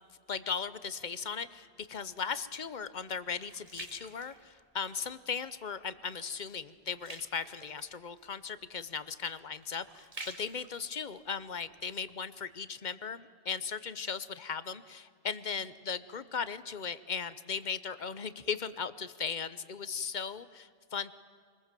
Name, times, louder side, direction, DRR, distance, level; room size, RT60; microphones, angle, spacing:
voice 1, 0.3-21.1, left 6 dB, 45° left, 15 dB, 0.9 m, -37 dB
sound 1, 1.8-5.1 5.6-5.9 6.2-12.2 12.7-12.8, right 2 dB, 35° right, 2.0 m, -50 dB
25.0 x 20.0 x 7.6 m, 2.1 s
omnidirectional pair, 1.1 m